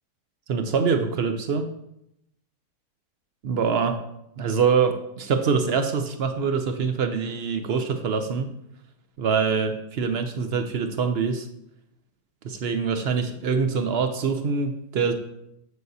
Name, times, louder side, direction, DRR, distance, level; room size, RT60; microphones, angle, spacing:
voice 1, 0.5-1.7 3.4-4.0 4.4-8.5 9.2-11.5 12.4-15.1, right 5 dB, 65° right, 7 dB, 0.6 m, -24 dB
7.7 x 6.6 x 2.7 m, 0.79 s
omnidirectional pair, 1.7 m